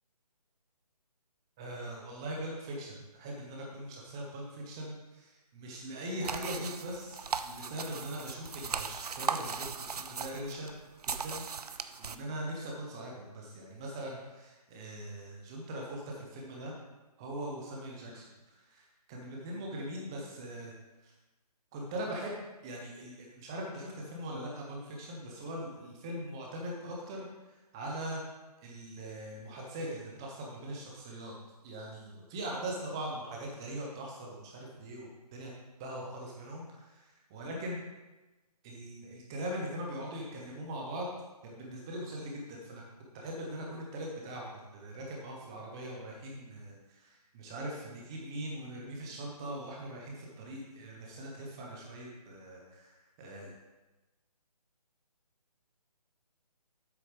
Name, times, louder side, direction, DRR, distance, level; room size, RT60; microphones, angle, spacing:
voice 1, 1.6-10.7 11.1-16.7 17.2-20.7 21.0-21.1 21.7-28.2 28.6-31.3 31.6-35.5 35.8-37.0 37.3-37.8 38.6-41.1 41.4-42.8 43.1-53.5, right 1 dB, 5° right, -1 dB, 0.4 m, -41 dB
sound 1, 6.2-12.2, right 5 dB, 70° right, 0.6 m, -38 dB
7.9 x 6.2 x 5.0 m, 1.1 s
hypercardioid pair, 160°, 20 cm